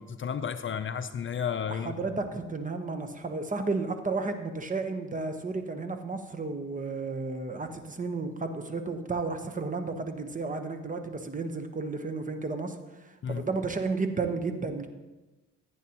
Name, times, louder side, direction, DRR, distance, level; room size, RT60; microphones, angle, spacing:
voice 1, 0.0-1.9 13.2-13.5, left 7 dB, 40° left, 10 dB, 0.5 m, -32 dB
voice 2, 1.7-14.9, right 3 dB, 25° right, 7 dB, 1.1 m, -33 dB
14.5 x 9.1 x 3.0 m, 1.1 s
cardioid pair, 90°, 30 cm